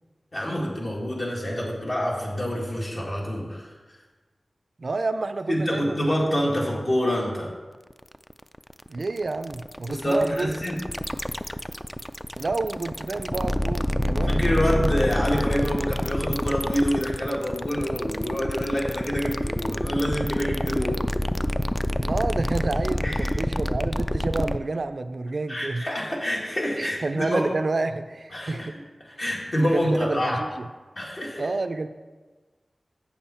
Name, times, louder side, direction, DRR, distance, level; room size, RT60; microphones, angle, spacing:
voice 1, 0.3-3.7 5.5-7.5 9.9-10.8 14.3-21.1 23.0-23.3 25.5-27.4 28.3-28.7 29.2-30.4 31.0-31.5, equal, 55° left, -3 dB, 2.1 m, -26 dB
voice 2, 4.8-6.7 8.9-10.6 12.4-14.4 21.9-25.8 26.8-28.8 29.6-30.7 31.4-31.9, right 3 dB, 65° right, 10 dB, 0.4 m, -29 dB
sound 1, 7.9-24.6, left 1 dB, 10° left, 0.3 m, -27 dB
7.2 x 7.2 x 4.3 m, 1.3 s
wide cardioid pair, 60°, 0 cm